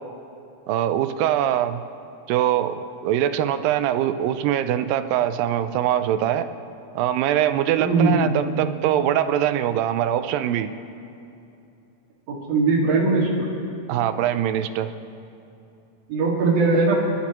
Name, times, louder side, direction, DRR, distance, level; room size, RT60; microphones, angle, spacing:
voice 1, 0.7-1.8 2.3-6.5 7.0-10.7 13.9-14.9, right 11 dB, 85° right, 11 dB, 2.3 m, -23 dB
voice 2, 7.8-8.3 12.3-13.5 16.1-17.0, right 3 dB, 50° right, -6 dB, 3.0 m, -20 dB
28.0 x 11.5 x 3.0 m, 2.7 s
omnidirectional pair, 3.9 m